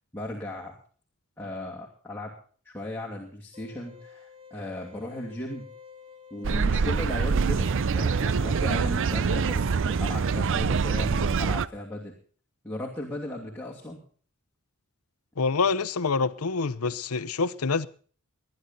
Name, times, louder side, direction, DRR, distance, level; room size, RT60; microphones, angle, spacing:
voice 1, 0.1-0.8 1.4-2.3 2.6-5.7 6.3-12.1 12.6-14.0, left 1 dB, 10° left, 2.7 m, -36 dB
sound 1, 3.5-8.6, left 6 dB, 25° right, 2.1 m, -50 dB
sound 2, 6.4-11.7, right 5 dB, 60° right, 0.5 m, -25 dB
voice 2, 15.4-17.9, left 4 dB, 90° left, 0.8 m, -26 dB
21.5 x 11.0 x 4.1 m
head